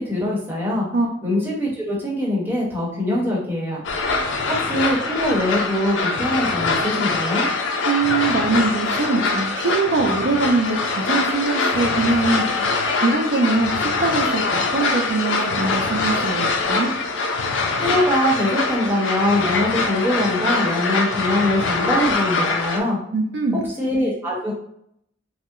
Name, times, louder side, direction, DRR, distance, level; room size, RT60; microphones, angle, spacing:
voice 1, 0.0-0.9 1.2-3.8 4.5-7.5 17.8-23.0 23.8-24.5, left 1 dB, 10° right, -6 dB, 1.0 m, -22 dB
sound 1, 3.8-22.8, left 3 dB, 80° left, 0.4 m, -23 dB
voice 2, 7.8-12.5 13.0-16.9 23.1-23.6, right 3 dB, 65° right, 2 dB, 0.4 m, -22 dB
2.8 x 2.0 x 3.5 m, 0.73 s
head